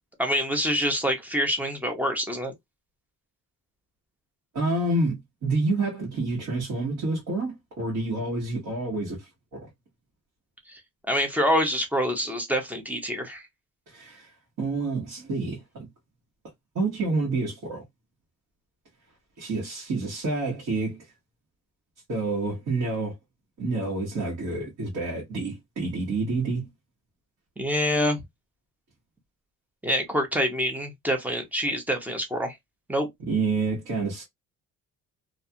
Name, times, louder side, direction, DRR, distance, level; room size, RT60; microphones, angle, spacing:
voice 1, 0.2-2.5 10.7-10.8 11.1-13.4 27.6-28.2 29.8-32.6 32.9-33.1, equal, 5° right, 0.5 m, -26 dB
voice 2, 4.5-9.7 13.9-14.3 14.6-15.6 16.7-17.8 19.4-21.0 22.1-23.1 23.6-26.7 33.2-34.2, right 3 dB, 60° right, 1.2 m, -28 dB
2.4 x 2.3 x 2.7 m
cardioid pair, 170°, 34 cm